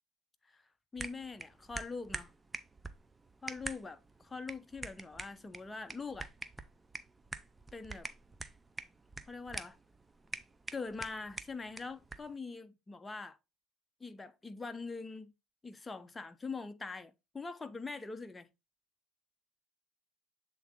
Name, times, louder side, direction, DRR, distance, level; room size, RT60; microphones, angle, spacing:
voice 1, 0.9-2.3 3.4-6.3 7.7-8.1 9.3-9.8 10.7-13.4 14.0-15.3 15.6-18.5, left 4 dB, 20° left, 0.7 m, -43 dB
sound 1, 1.0-12.4, right 3 dB, 15° right, 0.6 m, -46 dB
7.4 x 3.8 x 3.6 m
supercardioid pair, 90°, 0 cm